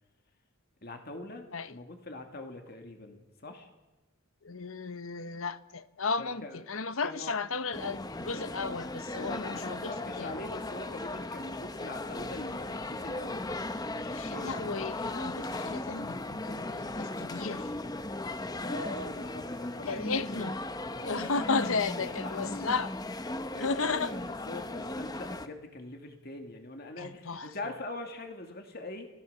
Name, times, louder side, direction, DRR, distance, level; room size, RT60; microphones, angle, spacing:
voice 1, 0.8-3.7 6.2-6.6 7.0-7.4 9.1-13.5 13.9-14.7 18.6-20.4 20.9-22.7 23.5-29.1, left 2 dB, 45° left, 2.3 m, -42 dB
voice 2, 4.4-10.3 14.1-17.7 19.9-20.5 21.0-22.9 23.6-24.1 27.0-27.5, left 4 dB, 70° left, 1.0 m, -34 dB
sound 1, 7.7-25.5, left 2 dB, 20° left, 0.8 m, -37 dB
29.0 x 17.0 x 6.8 m
head